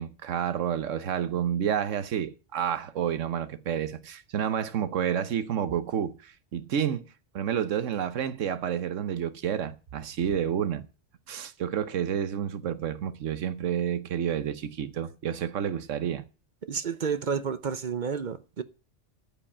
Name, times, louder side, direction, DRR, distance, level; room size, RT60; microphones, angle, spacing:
voice 1, 0.0-7.1 7.3-10.8 11.3-16.2, right 9 dB, 85° right, 1.3 m, -30 dB
voice 2, 16.6-18.6, right 6 dB, 45° right, 0.7 m, -30 dB
13.5 x 5.3 x 8.5 m
omnidirectional pair, 1.3 m